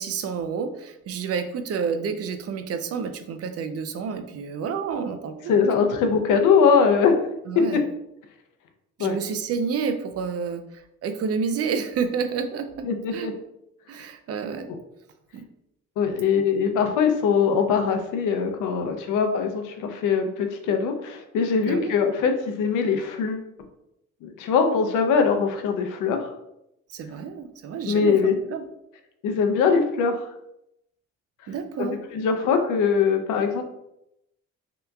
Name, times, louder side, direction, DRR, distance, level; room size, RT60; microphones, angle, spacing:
voice 1, 0.0-5.8 7.5-7.8 9.0-10.6 11.0-13.3 13.9-14.7 15.3-15.5 21.6-22.0 26.9-28.6 31.5-32.0, right 6 dB, 55° right, 8 dB, 0.4 m, -29 dB
voice 2, 5.5-7.2 7.6-7.7 9.0-9.2 12.8-13.3 16.0-23.5 24.2-26.3 27.9-28.3 29.2-30.3 32.1-33.6, left 6 dB, 90° left, 5 dB, 0.6 m, -22 dB
3.4 x 2.8 x 2.3 m, 0.82 s
cardioid pair, 90°, 30 cm